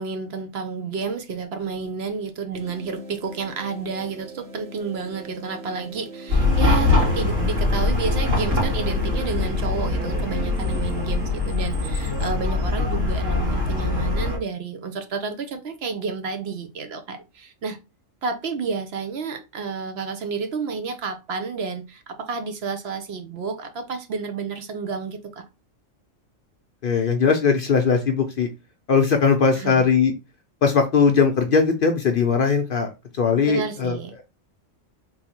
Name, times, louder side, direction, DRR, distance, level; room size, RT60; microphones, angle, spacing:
voice 1, 0.0-17.8 18.2-25.4 29.5-29.8 33.4-34.1, right 5 dB, 60° right, 0.8 m, -30 dB
sound 1, 2.5-11.3, right 3 dB, 40° right, 1.7 m, -39 dB
Chatter / Car passing by / Traffic noise roadway noise, 6.3-14.4, left 3 dB, 75° right, 2.4 m, -22 dB
voice 2, 26.8-28.5 28.9-30.1 30.6-32.9 33.2-34.0, left 5 dB, 55° left, 0.6 m, -19 dB
3.8 x 2.7 x 4.3 m
omnidirectional pair, 1.3 m